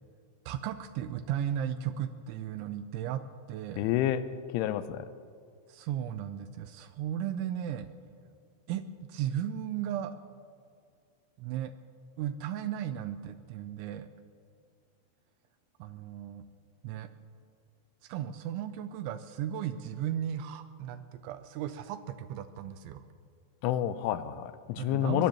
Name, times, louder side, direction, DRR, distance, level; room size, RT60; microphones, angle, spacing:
voice 1, 0.5-3.2 3.5-3.9 5.7-7.9 8.7-10.2 11.4-11.7 12.2-14.1 15.8-16.4 16.8-17.1 18.0-23.0 24.8-25.3, right 10 dB, 85° right, 10 dB, 2.8 m, -35 dB
voice 2, 3.8-4.2 4.5-5.1 23.6-25.3, left 12 dB, 85° left, 12 dB, 3.1 m, -29 dB
21.5 x 21.5 x 2.9 m, 2.2 s
omnidirectional pair, 5.6 m